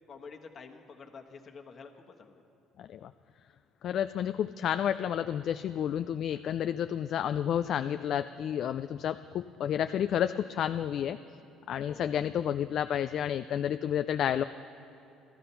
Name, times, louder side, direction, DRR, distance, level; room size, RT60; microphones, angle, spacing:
voice 1, 0.1-2.4 6.3-6.4 11.9-12.1, left 5 dB, 40° left, 4 dB, 1.2 m, -49 dB
voice 2, 2.8-3.1 3.8-11.2 11.7-14.4, left 9 dB, 55° left, 10 dB, 0.3 m, -30 dB
14.5 x 13.5 x 5.6 m, 2.9 s
cardioid pair, 115°, 0 cm